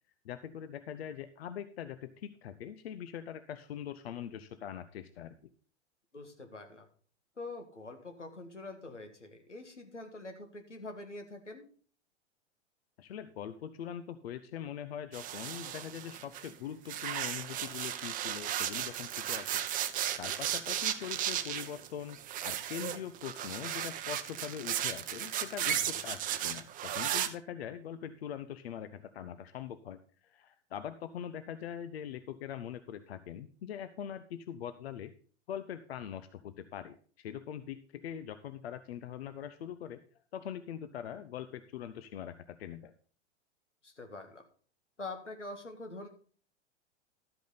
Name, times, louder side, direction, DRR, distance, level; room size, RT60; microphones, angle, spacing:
voice 1, 0.2-5.3 13.0-19.6 20.2-22.2 22.4-35.1 35.5-40.0 40.3-42.9, left 9 dB, 60° left, 12 dB, 0.8 m, -42 dB
voice 2, 6.1-6.9 7.4-11.6 25.7-25.9 43.8-44.4 45.0-46.1, left 2 dB, 85° left, 6 dB, 1.9 m, -45 dB
sound 1, 15.1-16.5 16.9-27.3, right 11 dB, 25° right, 0.8 m, -35 dB
12.5 x 8.3 x 4.0 m, 0.43 s
figure-of-eight pair, 95°, 35 cm